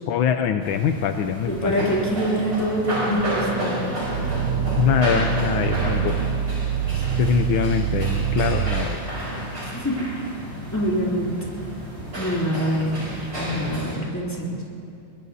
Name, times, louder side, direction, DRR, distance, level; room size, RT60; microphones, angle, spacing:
voice 1, 0.1-1.7 4.8-6.1 7.2-9.0, left 8 dB, 80° left, 7 dB, 1.4 m, -23 dB
sound 1, 0.6-14.0, right 1 dB, 40° right, 5.4 m, -31 dB
voice 2, 1.5-3.9 6.9-7.0 9.6-10.1 10.7-11.4 12.2-14.6, equal, 10° left, -5 dB, 3.0 m, -25 dB
Growling, 4.0-8.9, right 10 dB, 80° right, 1.5 m, -25 dB
22.5 x 21.5 x 2.8 m, 2.7 s
omnidirectional pair, 2.3 m